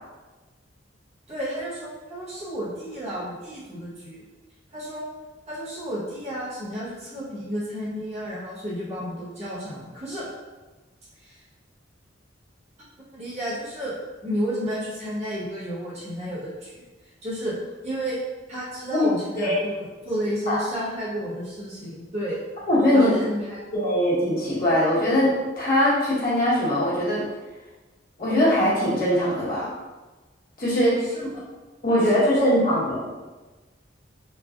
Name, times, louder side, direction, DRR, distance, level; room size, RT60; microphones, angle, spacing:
voice 1, 1.3-4.2 4.7-5.1 5.5-10.3 11.2-11.4 13.1-13.9 14.2-16.8 17.2-17.6 17.8-18.2 18.5-22.4 22.9-23.6 31.1-31.4 31.9-32.8, equal, 35° right, -9 dB, 1.2 m, -32 dB
voice 2, 22.7-23.1 23.7-27.2 28.2-29.7 30.6-30.9 31.8-33.1, left 1 dB, 50° left, -9 dB, 1.2 m, -21 dB
3.2 x 2.2 x 2.4 m, 1.2 s
head